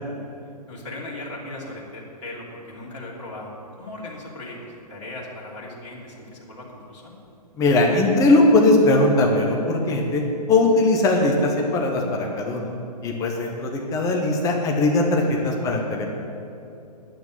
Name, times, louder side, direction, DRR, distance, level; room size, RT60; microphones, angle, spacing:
voice 1, 0.7-7.1 15.2-15.5, left 2 dB, 45° left, -4 dB, 3.1 m, -38 dB
voice 2, 7.6-10.2 10.5-12.7 13.0-16.1, left 2 dB, 15° left, 1 dB, 1.1 m, -19 dB
9.1 x 8.3 x 9.3 m, 2.7 s
figure-of-eight pair, 125°, 21 cm